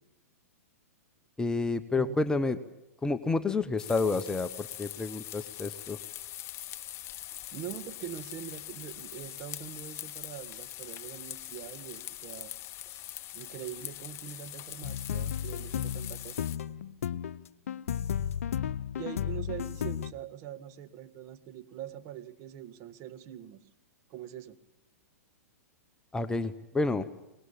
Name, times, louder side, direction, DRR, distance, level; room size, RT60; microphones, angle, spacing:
voice 1, 1.4-2.6 3.0-6.0 26.1-27.1, left 3 dB, 10° left, 10 dB, 0.9 m, -29 dB
voice 2, 1.9-2.4 7.5-12.5 12.8-13.0 13.3-16.5 19.0-23.7 24.1-24.6, right 10 dB, 40° right, 10 dB, 1.7 m, -43 dB
sound 1, 3.8-16.6, left 14 dB, 35° left, 0.9 m, -43 dB
sound 2, 14.8-20.1, left 9 dB, 70° left, 0.8 m, -34 dB
23.0 x 20.0 x 8.6 m, 0.93 s
hypercardioid pair, 110°, 8 cm